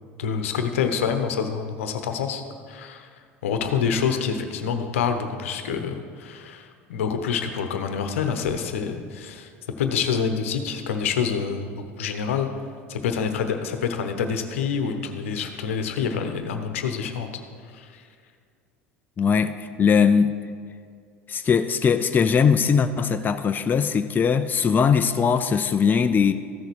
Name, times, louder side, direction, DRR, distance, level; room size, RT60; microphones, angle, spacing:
voice 1, 0.2-2.4 2.7-3.1 3.4-9.5 9.8-12.5 12.9-17.3 17.7-18.0, left 6 dB, 75° left, 7 dB, 0.9 m, -27 dB
voice 2, 19.2-20.3 21.3-26.3, left 6 dB, 25° left, 9 dB, 0.5 m, -20 dB
14.5 x 6.6 x 4.7 m, 2.2 s
hypercardioid pair, 75°, 7 cm